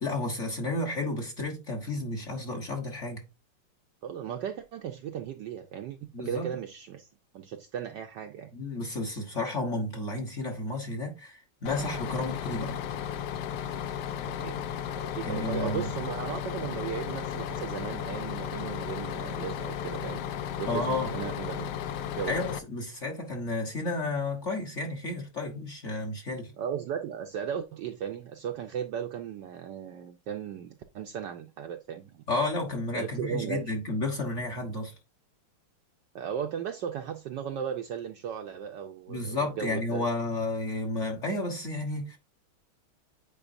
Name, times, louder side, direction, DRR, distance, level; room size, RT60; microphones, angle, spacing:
voice 1, 0.0-3.2 6.1-6.5 8.5-12.8 15.2-15.9 20.7-21.1 22.3-26.5 32.3-34.9 39.1-42.2, left 2 dB, 40° left, 1.3 m, -32 dB
voice 2, 4.0-7.1 7.3-8.5 14.3-14.7 15.0-20.2 20.6-21.7 22.2-22.4 26.6-32.2 32.9-33.7 36.1-40.1, right 8 dB, 75° right, 1.0 m, -36 dB
Bus, 11.6-22.6, left 9 dB, 80° left, 0.9 m, -35 dB
8.9 x 4.6 x 2.6 m
omnidirectional pair, 2.4 m